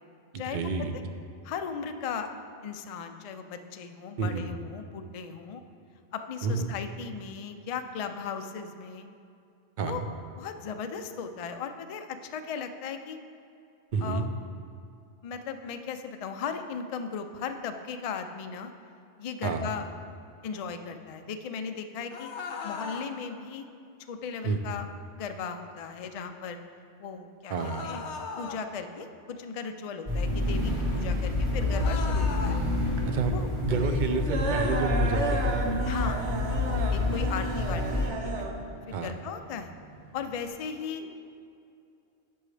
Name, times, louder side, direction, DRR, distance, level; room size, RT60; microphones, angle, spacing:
voice 1, 0.3-0.9 4.2-4.5 6.4-6.7 9.8-10.1 13.9-14.3 19.4-19.7 24.4-24.7 27.5-27.9 33.1-35.8 37.0-37.2 38.9-39.1, right 4 dB, 55° right, 7 dB, 0.6 m, -30 dB
voice 2, 1.4-2.3 2.6-5.6 6.1-9.1 9.8-10.0 10.4-13.2 14.0-14.3 15.2-18.7 19.2-19.9 20.4-22.3 22.6-23.7 24.1-24.9 25.1-26.6 27.0-27.5 27.8-28.0 28.4-32.6 33.3-33.5 35.9-36.2 36.6-38.5 38.9-39.7 40.1-41.1, left 6 dB, 55° left, 7 dB, 0.4 m, -37 dB
sound 1, 22.1-23.1 27.5-28.6 31.7-32.6, left 5 dB, 90° left, 1.0 m, -37 dB
sound 2, 30.1-38.1, left 2 dB, 25° right, 1.5 m, -28 dB
sound 3, 30.5-40.5, right 2 dB, 90° right, 1.1 m, -34 dB
10.0 x 6.9 x 3.3 m, 2.5 s
omnidirectional pair, 1.1 m